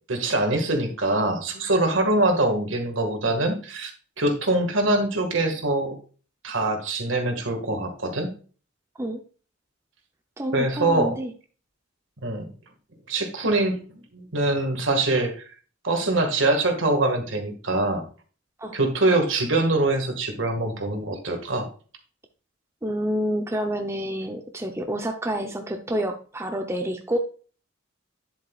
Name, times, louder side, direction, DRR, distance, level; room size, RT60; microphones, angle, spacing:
voice 1, 0.1-3.9 4.2-5.9 6.4-8.3 10.5-11.2 12.2-12.5 13.1-15.4 15.8-18.1 18.7-21.7, right 2 dB, 65° right, 5 dB, 1.8 m, -24 dB
voice 2, 10.4-11.3 18.6-18.8 22.8-27.2, equal, 15° right, 4 dB, 0.7 m, -28 dB
10.5 x 7.5 x 2.4 m, 0.39 s
head